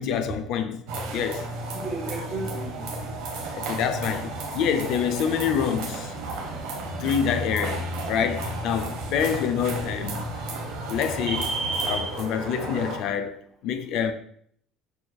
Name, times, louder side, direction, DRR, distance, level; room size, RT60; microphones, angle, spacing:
voice 1, 0.0-1.5 3.5-6.1 7.0-10.2 10.9-11.5 11.8-14.1, left 8 dB, 65° left, 0.3 m, -27 dB
sound 1, 0.9-13.0, right 2 dB, 80° right, 0.8 m, -32 dB
voice 2, 1.7-3.0, right 2 dB, 25° right, 1.2 m, -34 dB
6.5 x 2.3 x 2.2 m
supercardioid pair, 95°, 0 cm